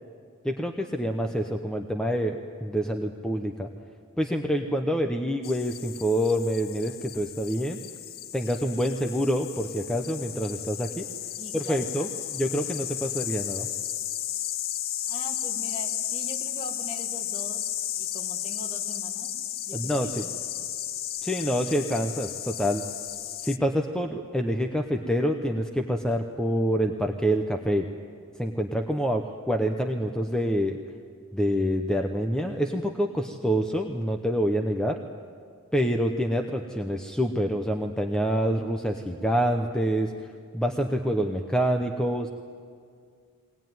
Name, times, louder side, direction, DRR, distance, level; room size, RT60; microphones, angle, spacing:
voice 1, 0.4-3.7 4.2-7.8 8.3-11.1 11.5-13.7 19.7-20.2 21.2-22.8 23.4-27.9 28.4-30.8 31.3-35.0 35.7-42.3, equal, 5° left, 3 dB, 0.8 m, -27 dB
sound 1, 5.4-23.6, left 11 dB, 45° left, 0.5 m, -34 dB
voice 2, 11.3-12.3 15.0-17.7 18.0-19.3 19.6-20.7 29.2-29.4, left 1 dB, 25° left, 4 dB, 2.0 m, -43 dB
22.0 x 19.0 x 9.3 m, 2.2 s
head